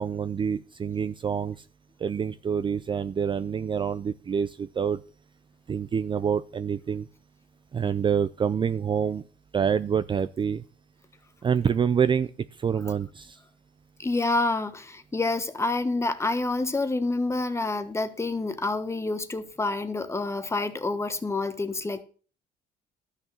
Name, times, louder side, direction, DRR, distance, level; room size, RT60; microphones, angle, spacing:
voice 1, 0.0-1.6 2.0-5.0 5.7-7.1 7.7-9.2 9.5-10.6 11.4-12.3 12.6-13.4, right 7 dB, 30° right, 0.5 m, -26 dB
voice 2, 14.0-22.0, left 2 dB, 15° left, 1.3 m, -28 dB
12.5 x 6.5 x 7.0 m
cardioid pair, 110°, 17 cm